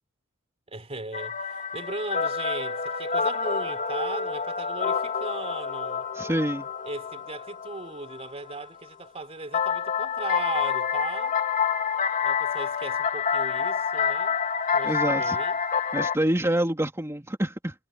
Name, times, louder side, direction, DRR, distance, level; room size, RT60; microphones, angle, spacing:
voice 1, 0.7-6.1 6.8-11.4 12.2-14.4 14.7-15.6, right 3 dB, 30° right, 3.7 m, -38 dB
sound 1, 1.1-8.6 9.5-16.2, left 6 dB, 40° left, 2.4 m, -28 dB
voice 2, 6.1-6.7 14.8-15.4 15.9-17.7, right 1 dB, 15° right, 3.3 m, -26 dB
head